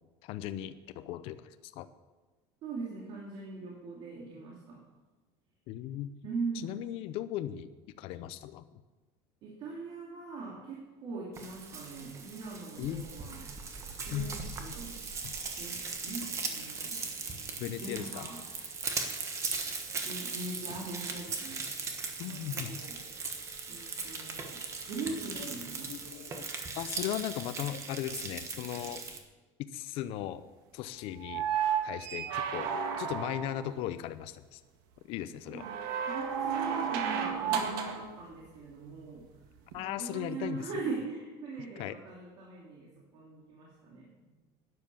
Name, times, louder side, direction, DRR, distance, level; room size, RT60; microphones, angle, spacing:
voice 1, 0.2-1.9 5.7-6.1 6.5-7.7 8.0-8.6 12.8-13.1 14.1-14.7 15.2-15.3 17.6-18.3 20.7-20.8 22.2-22.8 25.3-25.5 25.9-26.4 26.7-29.0 29.7-30.4 30.7-31.4 31.8-34.6 35.1-35.7 39.7-40.7 41.8-42.0, left 12 dB, 55° left, 11 dB, 0.6 m, -37 dB
voice 2, 2.6-4.8 6.2-6.8 9.4-13.4 14.1-15.0 15.6-17.0 17.7-18.4 20.0-21.6 22.3-23.0 23.7-24.6 24.8-25.9 35.5-39.3 39.8-44.3, right 4 dB, 45° right, -3 dB, 2.7 m, -41 dB
Frying (food), 11.3-29.2, right 4 dB, 25° right, 1.4 m, -39 dB
sound 1, 31.2-33.7 35.6-38.1 39.7-39.8, right 7 dB, 75° right, 1.8 m, -32 dB
12.5 x 9.7 x 7.0 m, 1.3 s
cardioid pair, 155°, 12 cm